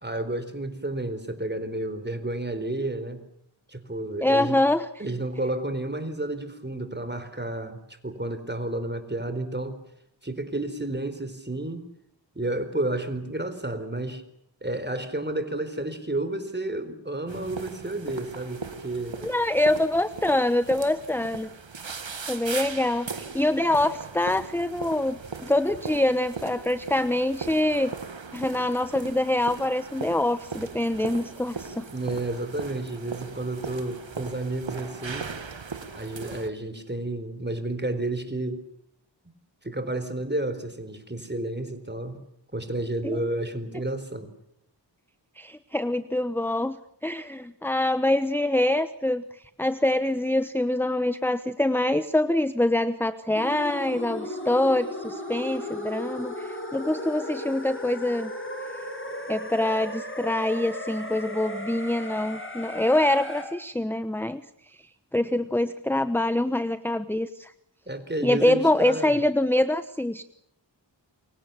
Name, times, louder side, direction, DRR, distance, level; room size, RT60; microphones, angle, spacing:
voice 1, 0.0-3.2 3.7-4.6 5.0-9.8 10.2-11.8 12.4-14.2 14.6-19.2 31.9-35.3 35.9-38.6 39.6-42.2 42.5-44.3 58.4-59.3 67.9-69.2, right 2 dB, 25° right, 10 dB, 4.3 m, -31 dB
voice 2, 4.2-4.9 19.2-21.5 22.3-27.9 28.3-31.9 43.1-43.2 45.4-46.8 47.0-49.2 49.6-58.3 59.3-64.4 65.1-67.5 68.2-70.2, left 1 dB, 5° left, 12 dB, 1.0 m, -25 dB
sound 1, 17.3-36.5, right 5 dB, 80° right, 2.0 m, -39 dB
sound 2, 53.3-63.4, left 1 dB, 25° left, 7.8 m, -36 dB
28.5 x 24.5 x 7.1 m, 0.74 s
wide cardioid pair, 50°, 45 cm